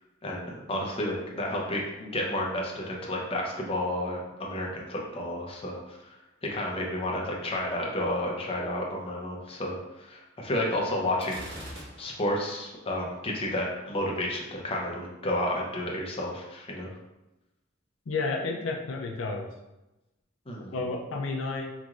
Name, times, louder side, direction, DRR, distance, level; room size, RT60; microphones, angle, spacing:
voice 1, 0.2-6.1 6.4-11.4 12.0-16.9 20.5-20.8, left 1 dB, 30° left, -2 dB, 0.7 m, -31 dB
Gunshot gunfire, 11.2-12.4, equal, 65° right, 1.4 m, -42 dB
voice 2, 18.1-19.5 20.7-21.7, left 3 dB, 80° left, 1 dB, 0.5 m, -31 dB
4.9 x 3.0 x 2.4 m, 0.99 s
head